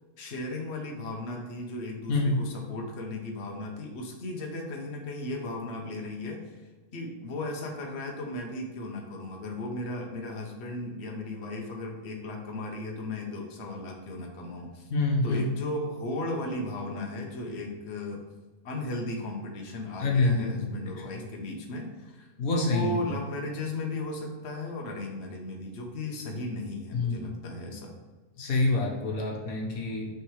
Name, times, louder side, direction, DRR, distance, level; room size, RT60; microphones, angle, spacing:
voice 1, 0.2-14.9 15.2-18.2 18.6-27.9, left 2 dB, 50° left, 1 dB, 1.2 m, -36 dB
voice 2, 14.9-15.4 20.0-20.5 22.4-22.9 26.9-27.3 28.4-30.1, left 2 dB, 85° left, -1 dB, 1.5 m, -26 dB
6.0 x 3.6 x 4.8 m, 1.3 s
omnidirectional pair, 1.5 m